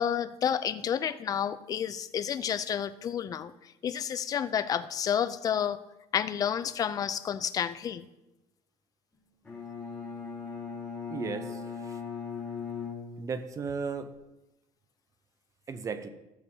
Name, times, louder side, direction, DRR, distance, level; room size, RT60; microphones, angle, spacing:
voice 1, 0.0-5.8 6.1-8.1, left 8 dB, 30° left, 12 dB, 0.4 m, -30 dB
Bowed string instrument, 9.4-13.6, left 6 dB, 10° left, 3.7 m, -39 dB
voice 2, 11.1-12.0 13.2-14.1 15.7-16.1, right 5 dB, 25° right, 11 dB, 0.6 m, -35 dB
16.5 x 6.9 x 2.8 m, 0.98 s
cardioid pair, 155°, 13 cm